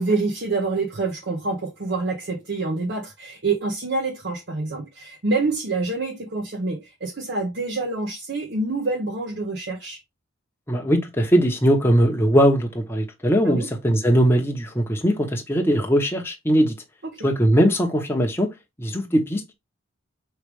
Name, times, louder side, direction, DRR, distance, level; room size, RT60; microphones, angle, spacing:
voice 1, 0.0-10.0 13.4-13.7 17.0-17.2, right 3 dB, 55° right, 0.8 m, -26 dB
voice 2, 10.7-16.7 17.2-18.5 18.8-19.5, equal, 10° left, 0.8 m, -20 dB
4.8 x 3.2 x 3.3 m
head